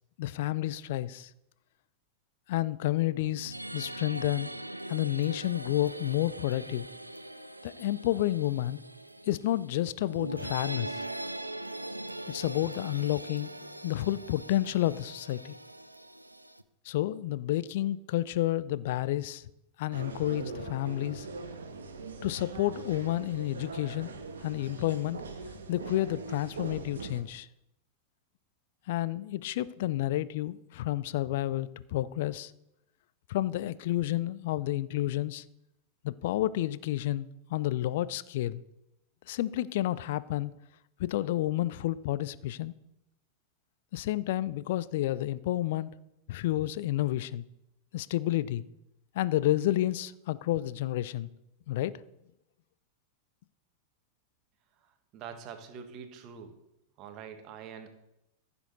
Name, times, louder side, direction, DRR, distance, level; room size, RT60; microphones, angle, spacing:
voice 1, 0.2-1.3 2.5-4.5 4.9-6.9 7.6-8.8 9.3-11.0 12.3-13.5 13.8-15.6 16.9-19.4 19.8-21.3 22.2-24.1 24.4-25.2 25.7-27.5 28.9-32.5 33.3-35.4 36.0-38.6 39.3-40.5 41.0-42.7 43.9-45.9 46.3-47.4 47.9-48.6 49.1-51.3 51.7-52.0, left 14 dB, 55° left, 0.5 m, -30 dB
sound 1, 3.2-16.6, right 1 dB, 85° right, 0.5 m, -41 dB
sound 2, 19.9-27.2, right 3 dB, 70° right, 1.3 m, -41 dB
voice 2, 55.1-56.5 57.0-57.9, right 7 dB, 40° right, 1.5 m, -44 dB
15.0 x 7.1 x 4.1 m
figure-of-eight pair, 90°, 0 cm